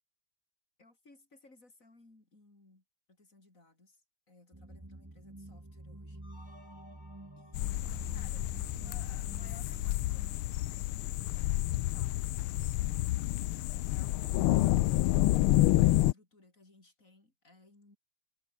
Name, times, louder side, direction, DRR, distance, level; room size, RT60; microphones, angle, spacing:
voice 1, 0.8-6.3 7.4-12.3 13.7-15.0 15.8-18.0, left 2 dB, 35° left, 5.6 m, -61 dB
sound 1, 4.5-10.3, right 1 dB, 10° right, 1.7 m, -48 dB
sound 2, 6.2-9.3, left 1 dB, 20° left, 4.8 m, -60 dB
sound 3, 7.5-16.1, left 16 dB, 90° left, 1.5 m, -29 dB
omnidirectional pair, 2.3 m